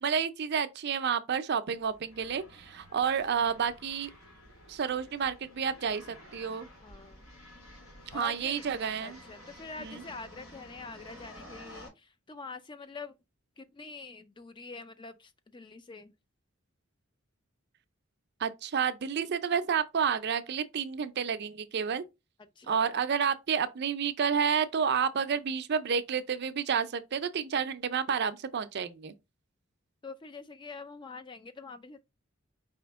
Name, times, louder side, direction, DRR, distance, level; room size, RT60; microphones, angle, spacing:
voice 1, 0.0-4.1 4.7-6.7 8.1-9.2 9.8-10.0 18.4-22.0 22.7-29.1, right 7 dB, 55° right, 0.5 m, -30 dB
sound 1, 1.7-11.9, left 1 dB, 85° left, 2.5 m, -52 dB
voice 2, 6.8-7.2 8.1-8.7 9.0-13.2 13.6-16.1 22.6-23.0 30.0-32.0, left 4 dB, 25° left, 0.4 m, -45 dB
5.0 x 2.8 x 3.4 m
head